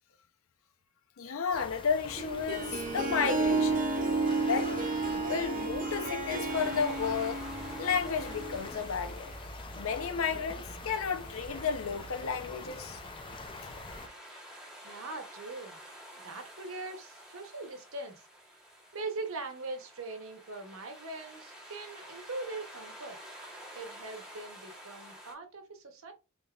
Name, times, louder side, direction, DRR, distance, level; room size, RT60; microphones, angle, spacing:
voice 1, 1.2-3.9 4.4-4.7 5.0-7.4 7.8-9.3 9.8-13.0, left 6 dB, 70° left, 0.6 m, -32 dB
sound 1, 1.5-14.1, left 2 dB, 25° left, 0.5 m, -44 dB
Harp, 2.2-8.7, right 3 dB, 40° right, 0.6 m, -32 dB
sound 2, 6.5-25.3, equal, 5° right, 1.1 m, -51 dB
voice 2, 14.8-15.8 16.2-18.3 18.9-23.2 23.7-26.1, right 3 dB, 70° right, 0.9 m, -41 dB
3.7 x 3.6 x 2.4 m
head